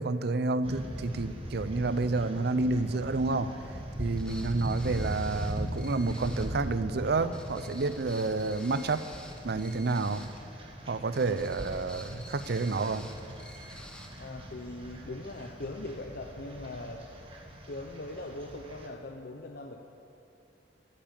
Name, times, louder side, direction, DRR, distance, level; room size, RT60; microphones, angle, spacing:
voice 1, 0.0-3.5 4.0-9.0 9.4-10.3 10.9-13.1, right 3 dB, 60° right, 13 dB, 0.6 m, -29 dB
sound 1, 0.6-18.9, equal, 30° right, 2.0 m, -40 dB
sound 2, 4.2-6.6 7.3-10.4 11.1-14.2, left 1 dB, 5° left, 1.5 m, -49 dB
voice 2, 14.2-17.0 17.7-19.8, left 2 dB, 60° left, 3 dB, 0.8 m, -41 dB
13.5 x 12.0 x 7.5 m, 2.9 s
head